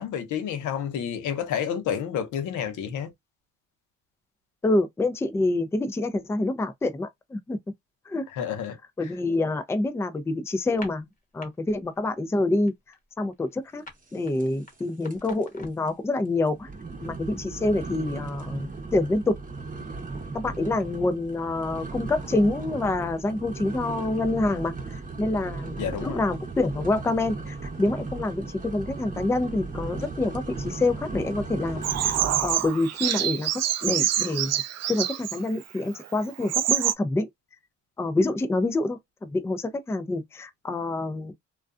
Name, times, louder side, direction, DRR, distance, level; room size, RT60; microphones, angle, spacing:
voice 1, 0.0-3.1 8.3-8.8 25.8-26.2, left 8 dB, 80° left, 0.8 m, -30 dB
voice 2, 4.6-7.6 8.1-8.3 9.0-11.1 11.3-12.7 13.2-13.8 14.1-16.7 17.0-19.4 20.3-32.1 32.4-33.5 33.8-34.6 34.9-37.3 38.0-41.3, left 2 dB, 10° left, 0.4 m, -27 dB
sound 1, 10.7-11.5 11.8-12.1 12.4-15.9, left 3 dB, 25° left, 0.9 m, -46 dB
sound 2, 14.4-14.8 15.0-15.4 15.9-16.0 16.5-32.7, right 3 dB, 25° right, 0.8 m, -36 dB
Bird vocalization bird call bird song, 31.8-35.4 36.0-36.1 36.4-36.9, right 11 dB, 60° right, 0.4 m, -26 dB
2.4 x 2.3 x 2.4 m
cardioid pair, 90°, 30 cm